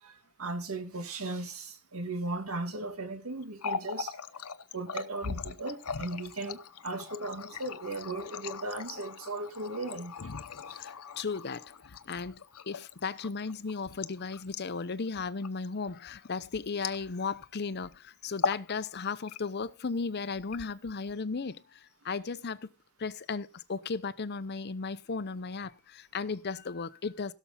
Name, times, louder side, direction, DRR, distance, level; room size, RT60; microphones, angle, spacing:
voice 1, 0.0-4.1 4.7-10.1, right 2 dB, 70° right, 2.2 m, -37 dB
Water tap faucet, 3.4-17.5 17.7-17.9 18.3-18.7 19.0-19.7 20.3-21.1, left 6 dB, 90° left, 0.8 m, -39 dB
voice 2, 10.8-12.4 12.7-22.7 23.0-27.3, left 4 dB, 50° left, 0.7 m, -35 dB
17.0 x 7.0 x 4.2 m
head